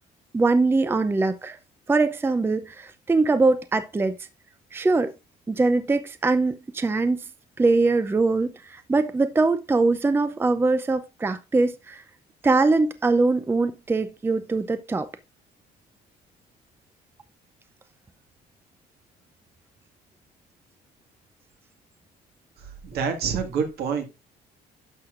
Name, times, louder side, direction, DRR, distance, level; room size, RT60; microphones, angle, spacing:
voice 1, 0.3-1.6 1.9-4.2 4.7-5.1 5.5-7.3 7.6-12.0 12.4-15.1, right 3 dB, 15° right, 0.5 m, -22 dB
voice 2, 22.6-24.0, right 6 dB, 70° right, 2.0 m, -27 dB
11.5 x 6.3 x 2.5 m
cardioid pair, 110°, 17 cm